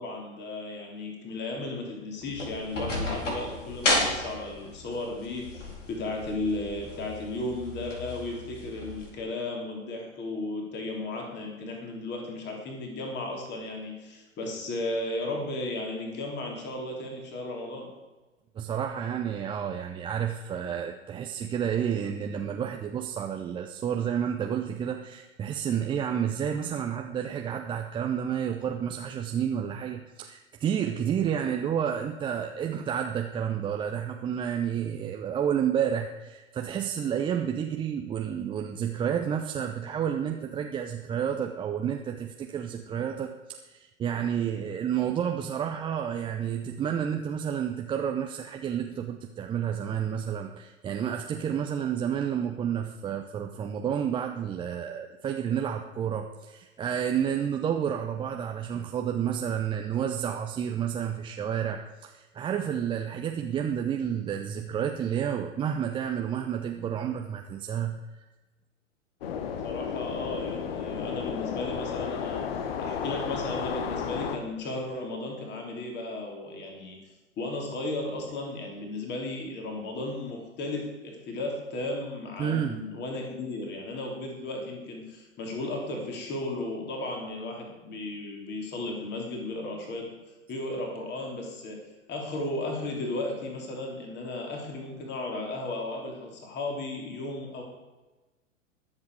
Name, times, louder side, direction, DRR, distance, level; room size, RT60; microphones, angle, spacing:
voice 1, 0.0-17.9 69.6-72.4 72.8-77.0 77.4-90.1 90.5-91.8 92.1-97.6, left 2 dB, 25° left, 1 dB, 3.2 m, -35 dB
sound 1, 2.2-9.1, left 1 dB, 70° left, 3.9 m, -33 dB
voice 2, 18.6-68.2 82.4-82.8, right 8 dB, 15° right, 3 dB, 0.6 m, -30 dB
sound 2, 69.2-74.4, left 7 dB, 50° left, 1.3 m, -33 dB
21.0 x 7.5 x 4.7 m, 1.2 s
figure-of-eight pair, 100°, 38 cm